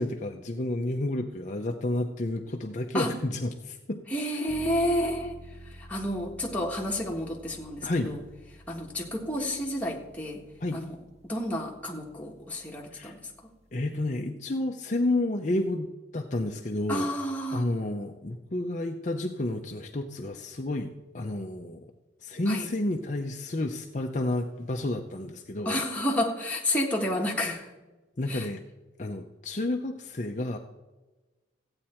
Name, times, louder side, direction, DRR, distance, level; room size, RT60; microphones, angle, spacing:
voice 1, 0.0-4.0 7.8-8.2 10.6-10.8 12.9-13.2 13.7-17.1 17.5-21.9 22.2-25.8 28.2-28.6 29.0-30.6, left 1 dB, 40° left, 3 dB, 0.7 m, -30 dB
voice 2, 4.1-5.4 5.7-8.2 8.7-10.4 10.7-11.0 11.2-13.2 16.9-17.7 22.5-22.7 25.6-27.7 28.3-28.5, left 1 dB, 5° left, -2 dB, 1.5 m, -30 dB
sound 1, 4.5-14.2, equal, 35° right, 1.3 m, -50 dB
14.5 x 8.9 x 4.4 m, 1.2 s
head